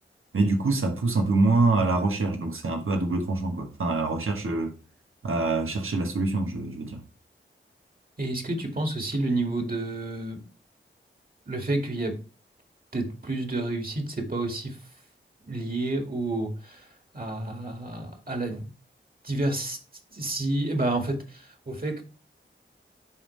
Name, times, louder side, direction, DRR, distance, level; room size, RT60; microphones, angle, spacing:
voice 1, 0.3-4.7 5.2-7.0, right 3 dB, 80° right, 1.3 m, -25 dB
voice 2, 8.2-10.5 11.5-12.2 12.9-14.8 15.5-18.7 19.2-19.8 20.1-22.0, right 2 dB, 45° right, 2.1 m, -30 dB
10.5 x 3.7 x 3.2 m
cardioid pair, 40°, 21 cm